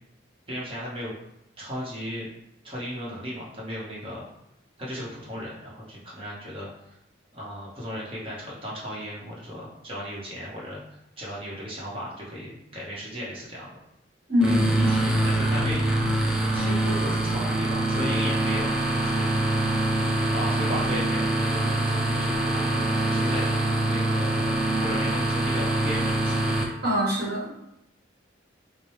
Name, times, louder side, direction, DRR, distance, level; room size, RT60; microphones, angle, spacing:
voice 1, 0.5-1.1 1.6-2.3 2.6-4.3 4.8-6.7 7.3-13.8 14.5-16.3 16.5-19.4 20.3-22.6 23.1-23.5 23.9-24.5 24.8-26.4, equal, 30° right, -6 dB, 1.0 m, -35 dB
voice 2, 14.3-14.9 26.8-27.6, left 1 dB, 55° right, -4 dB, 1.1 m, -24 dB
sound 1, 14.4-26.6, right 1 dB, 5° right, 0.4 m, -24 dB
4.7 x 2.2 x 3.1 m, 0.82 s
head